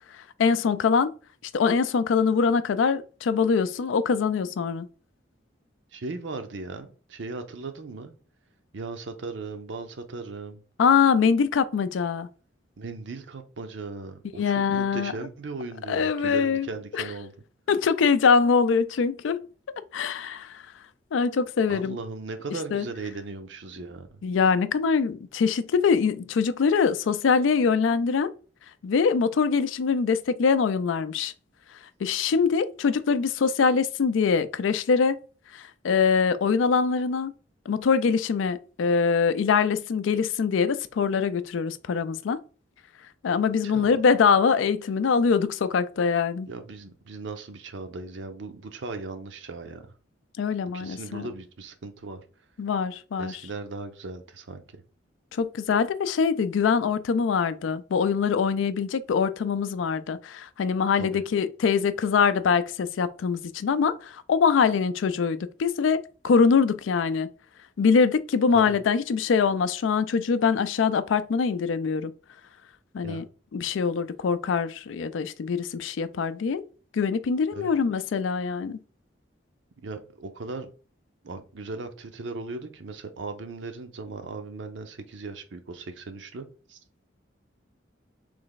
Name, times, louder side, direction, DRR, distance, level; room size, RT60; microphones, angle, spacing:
voice 1, 0.4-1.1 1.5-4.9 10.8-12.3 14.4-15.1 15.9-16.7 16.9-17.0 17.7-19.5 19.9-20.6 21.1-22.0 22.7-22.8 24.2-28.3 28.8-31.3 32.0-35.2 35.5-37.3 37.7-42.4 43.2-46.5 50.4-51.3 52.6-53.3 55.3-67.3 67.8-72.1 72.9-73.2 73.5-76.6 76.9-78.8, left 5 dB, 85° left, 0.4 m, -23 dB
voice 2, 5.9-8.1 8.7-10.6 12.8-17.3 21.7-24.2 43.6-43.9 46.5-49.9 50.7-52.2 53.2-54.6 61.0-61.2 68.5-68.8 73.0-73.2 77.5-77.7 79.8-80.7 81.2-86.8, right 3 dB, 75° right, 0.6 m, -37 dB
3.3 x 3.1 x 3.9 m
head